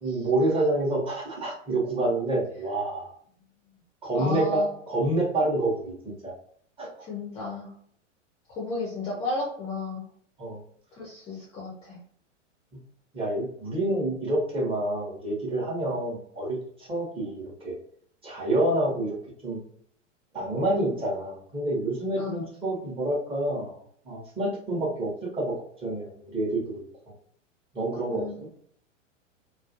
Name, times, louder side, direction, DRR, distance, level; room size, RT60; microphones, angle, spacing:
voice 1, 0.0-3.1 4.0-6.3 6.8-6.9 10.4-10.6 13.1-17.7 18.2-19.1 19.4-19.6 20.3-23.7 24.1-25.5 25.8-26.6 27.7-28.2, right 1 dB, 15° right, -4 dB, 0.8 m, -28 dB
voice 2, 4.1-4.7 7.0-7.7 8.5-10.0 10.9-12.0 22.2-22.4 28.1-28.3, left 2 dB, 15° left, -4 dB, 0.5 m, -33 dB
2.3 x 2.3 x 2.6 m, 0.62 s
figure-of-eight pair, 95°, 37 cm